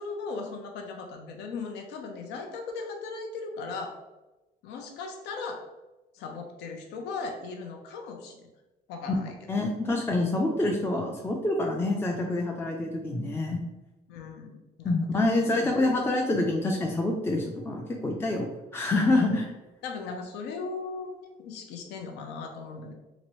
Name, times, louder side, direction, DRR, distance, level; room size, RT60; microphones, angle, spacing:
voice 1, 0.0-4.0 4.6-5.7 6.1-8.5 8.9-9.6 14.1-15.9 19.1-19.3 19.8-22.9, left 4 dB, 85° left, 3 dB, 0.5 m, -38 dB
voice 2, 9.5-13.6 14.8-19.5, left 2 dB, 15° left, 0 dB, 0.3 m, -27 dB
2.9 x 2.6 x 2.9 m, 1.1 s
cardioid pair, 110°, 17 cm